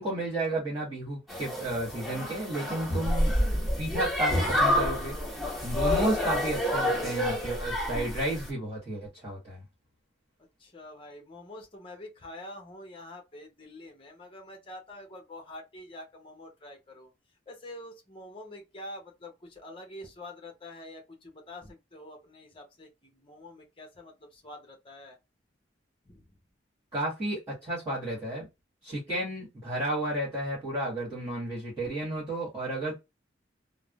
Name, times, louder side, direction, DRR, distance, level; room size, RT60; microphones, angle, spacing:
voice 1, 0.0-3.3 3.8-9.6 26.9-28.5 28.8-32.9, right 1 dB, 15° right, 1.5 m, -32 dB
sound 1, 1.3-8.5, left 1 dB, ahead, 1.4 m, -28 dB
voice 2, 10.6-17.1 17.5-25.2 26.0-26.3, left 1 dB, 30° left, 0.8 m, -46 dB
3.5 x 2.0 x 2.4 m
head